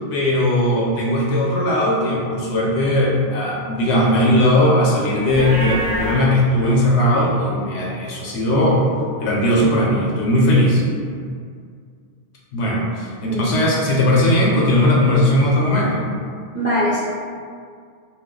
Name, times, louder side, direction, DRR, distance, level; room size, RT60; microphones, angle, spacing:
voice 1, 0.1-8.9 9.2-10.8 12.5-16.0, left 1 dB, 80° left, -3 dB, 0.9 m, -18 dB
Livestock farm animals working animals, 5.3-6.2, right 1 dB, 70° right, 0.9 m, -25 dB
voice 2, 13.2-13.5 16.5-17.0, equal, 15° right, -9 dB, 0.5 m, -21 dB
2.4 x 2.2 x 3.6 m, 2.1 s
omnidirectional pair, 1.2 m